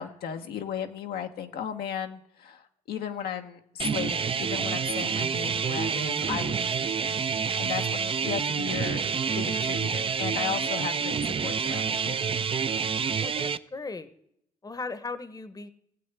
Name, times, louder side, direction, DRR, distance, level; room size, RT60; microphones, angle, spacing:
voice 1, 0.0-9.0 9.4-12.2, left 8 dB, 80° left, 5 dB, 0.9 m, -35 dB
sound 1, 3.8-13.6, right 6 dB, 35° right, 0.5 m, -28 dB
voice 2, 13.2-14.1 14.6-15.7, left 3 dB, 25° left, 13 dB, 0.9 m, -37 dB
17.0 x 7.7 x 3.4 m, 0.75 s
supercardioid pair, 60°, 16 cm